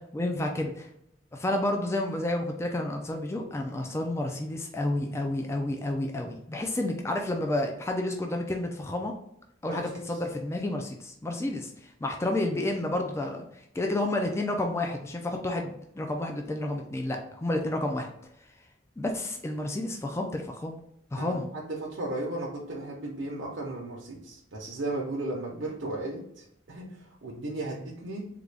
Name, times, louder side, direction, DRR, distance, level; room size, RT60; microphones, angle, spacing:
voice 1, 0.1-0.9 1.3-9.1 9.6-18.1 19.0-20.8 21.1-21.5, left 1 dB, 15° left, 2 dB, 0.3 m, -30 dB
voice 2, 21.2-28.2, right 2 dB, 80° right, -3 dB, 0.8 m, -35 dB
3.7 x 2.3 x 3.3 m, 0.75 s
head